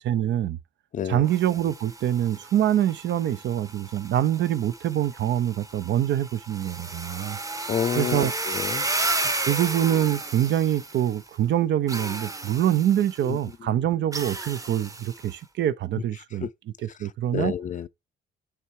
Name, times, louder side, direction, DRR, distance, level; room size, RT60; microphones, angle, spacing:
voice 1, 0.0-0.6 1.1-7.4 8.0-8.3 9.4-16.5 17.0-17.5, right 11 dB, 65° right, 0.6 m, -25 dB
voice 2, 0.9-1.3 7.7-8.9 13.2-13.4 13.7-13.8 16.3-16.5 16.8-17.9, left 8 dB, 40° left, 0.4 m, -30 dB
sound 1, 1.2-11.3 11.9-13.3 14.1-15.3, right 2 dB, 15° right, 0.9 m, -33 dB
8.6 x 3.4 x 4.7 m
cardioid pair, 90°, 20 cm